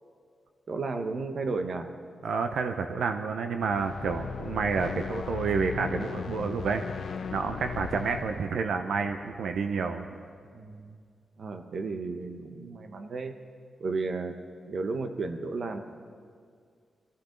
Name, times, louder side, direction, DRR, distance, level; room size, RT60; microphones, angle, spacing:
voice 1, 0.7-1.9 8.3-8.5 10.5-11.0 11.4-13.3 13.8-14.4 14.7-15.8, right 3 dB, 50° right, 7 dB, 1.0 m, -33 dB
voice 2, 2.2-6.8 7.3-10.0, right 5 dB, 85° right, 6 dB, 0.7 m, -29 dB
sound 1, 3.6-9.9, left 7 dB, 65° left, 0.6 m, -38 dB
23.0 x 14.0 x 3.9 m, 2.1 s
wide cardioid pair, 145°, 0 cm